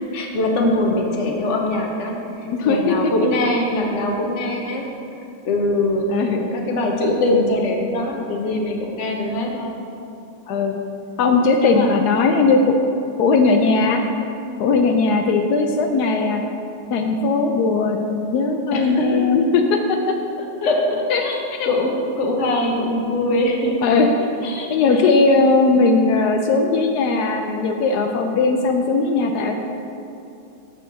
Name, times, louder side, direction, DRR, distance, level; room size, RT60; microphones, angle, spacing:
voice 1, 0.1-4.8 5.4-6.2 6.5-9.7 11.6-11.9 18.7-19.2 20.6-23.8 24.4-25.0, left 1 dB, 50° left, 1 dB, 0.9 m, -22 dB
voice 2, 2.4-3.1 3.4-3.5 6.1-6.4 10.5-10.8 11.2-12.8 13.2-14.1 14.6-16.4 16.9-20.0 21.1-21.2 21.6-21.7 23.8-24.1 24.7-29.5, left 3 dB, 90° left, 4 dB, 0.8 m, -18 dB
7.4 x 4.3 x 6.8 m, 2.7 s
omnidirectional pair, 2.3 m